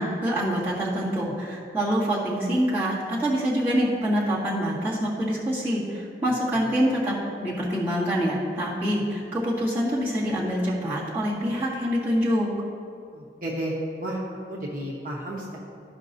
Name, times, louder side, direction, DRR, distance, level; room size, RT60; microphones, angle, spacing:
voice 1, 0.0-12.5, equal, 10° right, -9 dB, 1.9 m, -25 dB
voice 2, 13.1-14.2 14.5-15.6, right 1 dB, 50° right, -4 dB, 1.1 m, -32 dB
14.0 x 5.3 x 2.7 m, 2.3 s
head